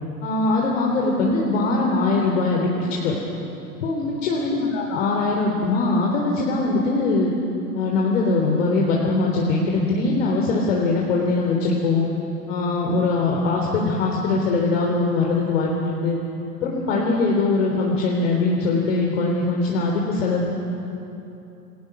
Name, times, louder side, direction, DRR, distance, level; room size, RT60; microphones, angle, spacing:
voice 1, 0.2-3.1 3.8-7.3 7.7-12.1 12.5-16.2 16.6-20.5, left 3 dB, 50° left, -2 dB, 3.8 m, -21 dB
29.5 x 22.5 x 6.2 m, 2.8 s
figure-of-eight pair, 100°, 47 cm